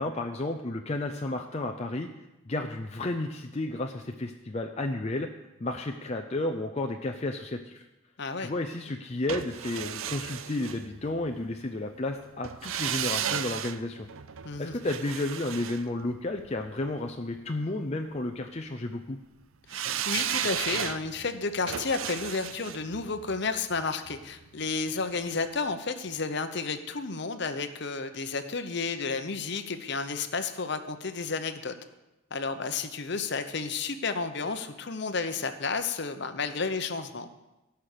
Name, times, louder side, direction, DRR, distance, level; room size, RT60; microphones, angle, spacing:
voice 1, 0.0-2.1 2.5-5.3 5.6-7.9 8.4-14.1 14.6-19.2, left 2 dB, 30° left, 3 dB, 0.5 m, -32 dB
voice 2, 8.2-8.5 14.4-14.7 19.7-31.8 32.3-37.3, left 4 dB, 50° left, 9 dB, 0.8 m, -32 dB
sound 1, 9.3-11.4 12.4-16.7 19.7-24.7 25.0-25.1, right 9 dB, 70° right, 0.5 m, -34 dB
16.5 x 5.8 x 6.7 m, 1.0 s
head